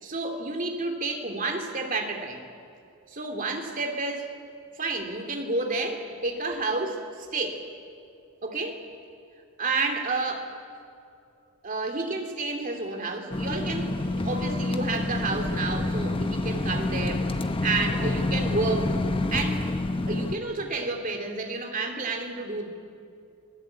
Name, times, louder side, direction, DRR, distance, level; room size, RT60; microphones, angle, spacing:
voice 1, 0.0-2.4 3.1-4.3 4.7-7.7 8.4-8.9 9.6-10.5 11.6-19.0 19.3-19.7 20.1-22.7, right 3 dB, 40° right, 3 dB, 2.8 m, -30 dB
sound 1, 13.3-20.4, left 2 dB, 25° left, 1.0 m, -28 dB
29.0 x 18.5 x 8.6 m, 2.5 s
head